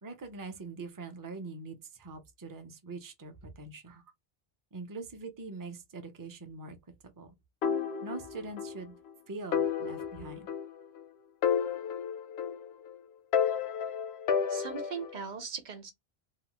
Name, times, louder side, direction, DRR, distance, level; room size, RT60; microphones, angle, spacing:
voice 1, 0.0-4.0 4.7-6.8 7.0-7.3 8.0-8.9 9.3-10.5, right 3 dB, 25° right, 0.4 m, -43 dB
sound 1, 7.6-8.8 9.1-9.2 9.5-11.0 11.4-12.9 13.3-15.2, left 7 dB, 90° left, 0.9 m, -31 dB
voice 2, 14.5-15.9, right 6 dB, 50° right, 0.8 m, -39 dB
2.9 x 2.0 x 2.9 m
omnidirectional pair, 1.0 m